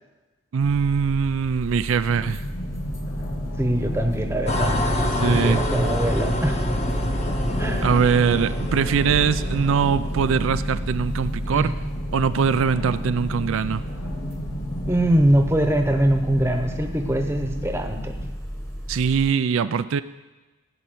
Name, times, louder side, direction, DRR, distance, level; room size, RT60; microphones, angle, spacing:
voice 1, 0.5-2.4 5.0-5.6 7.8-11.7 12.1-13.8 18.9-20.0, right 6 dB, 75° right, 13 dB, 0.4 m, -22 dB
sound 1, 0.6-19.3, equal, 10° left, 1.1 m, -33 dB
sound 2, 2.1-18.3, equal, 55° left, 1.5 m, -33 dB
voice 2, 3.6-4.8 5.3-6.6 7.6-7.9 11.5-11.7 14.9-18.2, right 1 dB, 10° right, 5 dB, 0.9 m, -22 dB
sound 3, 4.5-10.5, left 1 dB, 35° left, 1.1 m, -26 dB
15.5 x 5.6 x 9.1 m, 1.2 s
head